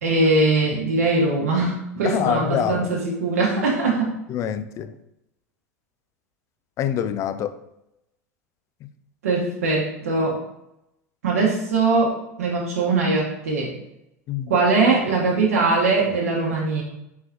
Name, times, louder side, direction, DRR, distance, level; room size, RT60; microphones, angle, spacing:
voice 1, 0.0-4.1 9.2-10.4 11.2-13.7 14.5-16.8, right 3 dB, 75° right, -2 dB, 1.0 m, -21 dB
voice 2, 2.0-2.9 4.3-4.9 6.8-7.5 8.8-8.9 14.3-14.5, left 9 dB, 40° left, 11 dB, 0.4 m, -25 dB
4.0 x 3.8 x 2.7 m, 0.85 s
hypercardioid pair, 80°, 8 cm